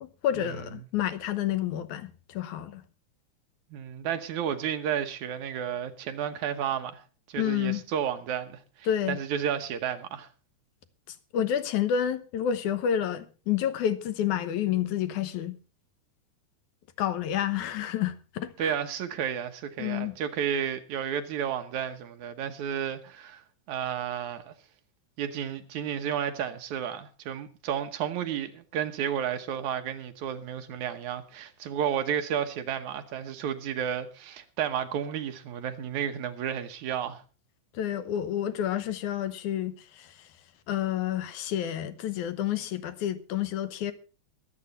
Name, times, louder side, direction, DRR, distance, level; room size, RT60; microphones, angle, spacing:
voice 1, 0.0-2.8 7.4-7.8 8.9-9.2 11.1-15.6 17.0-18.7 19.8-20.1 37.7-40.3 40.7-43.9, left 10 dB, 75° left, 2.4 m, -29 dB
voice 2, 3.7-7.0 7.3-10.3 18.6-24.5 25.2-37.2, right 9 dB, 75° right, 2.5 m, -32 dB
22.5 x 8.2 x 4.1 m
omnidirectional pair, 3.5 m